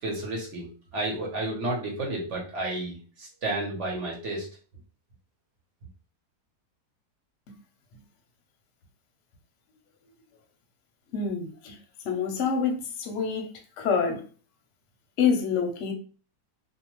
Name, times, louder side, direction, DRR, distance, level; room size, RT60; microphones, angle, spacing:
voice 1, 0.0-4.6, right 2 dB, 55° right, 1.0 m, -32 dB
voice 2, 11.1-11.8 12.0-13.5 13.8-14.2 15.2-15.9, left 6 dB, 60° left, 0.8 m, -26 dB
2.7 x 2.1 x 3.0 m
omnidirectional pair, 1.7 m